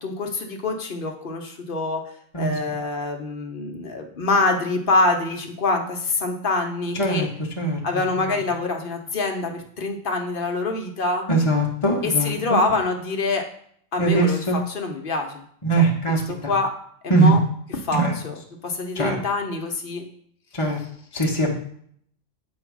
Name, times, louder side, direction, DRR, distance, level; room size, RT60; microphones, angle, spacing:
voice 1, 0.0-2.0 2.4-7.3 7.8-11.2 12.0-13.4 13.9-15.4 15.8-16.7 17.0-17.4 17.8-20.0, left 3 dB, 55° left, 3 dB, 1.2 m, -25 dB
voice 2, 6.9-7.3 7.6-7.8 8.2-8.4 11.3-12.6 14.0-14.6 15.6-16.5 17.1-17.3 17.9-18.1 18.9-19.2 20.5-20.8 21.1-21.5, right 2 dB, 30° left, -1 dB, 1.2 m, -21 dB
8.1 x 3.1 x 6.1 m, 0.64 s
omnidirectional pair, 1.1 m